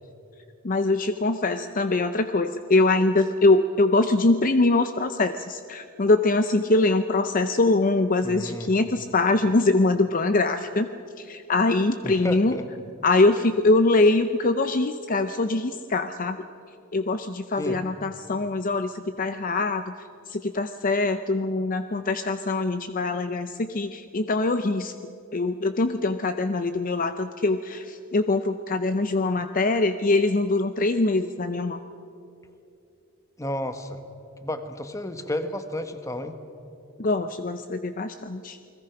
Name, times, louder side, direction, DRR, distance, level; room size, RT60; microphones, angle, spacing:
voice 1, 0.6-10.9 11.2-12.6 13.0-16.4 16.9-19.8 20.3-24.9 25.3-31.8 37.0-38.6, left 2 dB, 40° left, 9 dB, 0.6 m, -23 dB
voice 2, 8.2-8.7 12.0-12.6 17.6-17.8 33.4-34.0 34.4-36.3, left 1 dB, 15° left, 8 dB, 1.3 m, -32 dB
29.5 x 20.5 x 5.9 m, 2.7 s
head